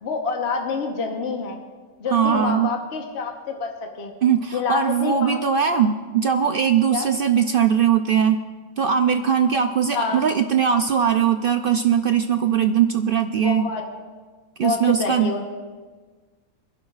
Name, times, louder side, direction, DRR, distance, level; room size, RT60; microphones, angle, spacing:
voice 1, 0.0-1.6 2.0-4.1 4.5-5.4 6.9-7.1 9.9-10.2 13.4-13.8 14.6-15.4, left 4 dB, 50° left, 2 dB, 1.3 m, -27 dB
voice 2, 2.1-2.7 4.2-8.4 8.8-13.7 14.6-15.3, right 8 dB, 65° right, 7 dB, 0.5 m, -20 dB
26.0 x 11.5 x 2.4 m, 1.4 s
omnidirectional pair, 1.5 m